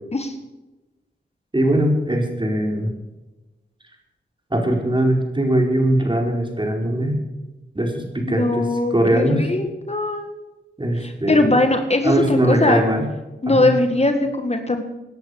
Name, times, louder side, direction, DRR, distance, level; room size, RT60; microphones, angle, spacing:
voice 1, 1.5-2.9 4.5-7.2 7.7-9.4 10.8-11.6 12.0-13.1 13.5-13.7, right 1 dB, 25° right, 2 dB, 4.7 m, -20 dB
voice 2, 8.4-10.3 11.0-12.8 13.4-14.8, left 2 dB, 35° left, 6 dB, 1.9 m, -20 dB
18.5 x 10.5 x 6.5 m, 1.1 s
cardioid pair, 50°, 19 cm